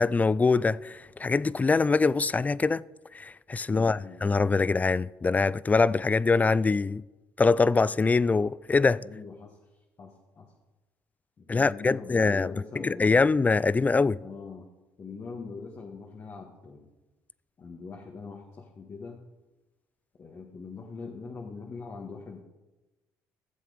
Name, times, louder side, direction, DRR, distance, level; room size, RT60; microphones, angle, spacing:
voice 1, 0.0-2.8 3.1-7.0 7.4-9.0 11.5-12.5 12.8-14.2, left 4 dB, 20° left, 0.4 m, -24 dB
voice 2, 3.7-4.2 9.0-9.6 10.0-10.5 11.4-13.3 14.2-14.7 15.0-16.9 17.6-19.2 20.2-22.4, left 4 dB, 40° left, 1.8 m, -42 dB
15.0 x 7.4 x 5.1 m
supercardioid pair, 75°, 7 cm